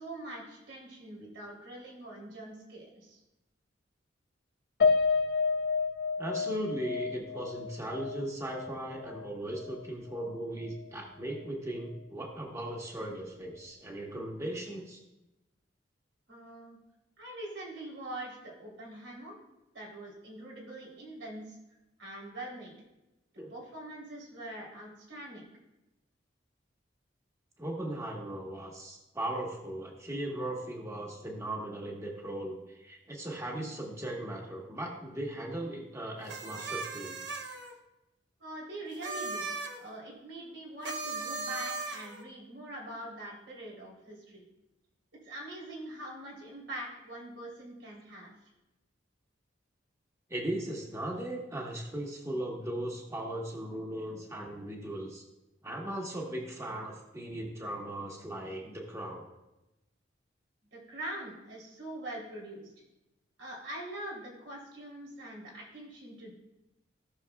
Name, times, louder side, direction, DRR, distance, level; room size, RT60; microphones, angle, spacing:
voice 1, 0.0-3.2 16.3-16.8 17.2-19.3 19.7-21.6 22.0-22.7 23.5-25.5 38.4-39.5 39.8-44.5 45.2-48.3 60.7-62.7 63.4-66.3, right 1 dB, 90° right, -3 dB, 3.5 m, -43 dB
Piano, 4.8-9.3 9.6-9.8 10.2-10.3, left 4 dB, 60° left, 0.7 m, -30 dB
voice 2, 6.2-15.0 23.4-23.5 27.6-37.2 50.3-55.2 55.6-59.2, right 1 dB, 15° right, -1 dB, 1.3 m, -38 dB
sound 1, 36.3-37.7 38.9-39.8 40.8-42.2, right 3 dB, 70° right, 1.1 m, -38 dB
17.0 x 6.3 x 2.3 m, 0.97 s
head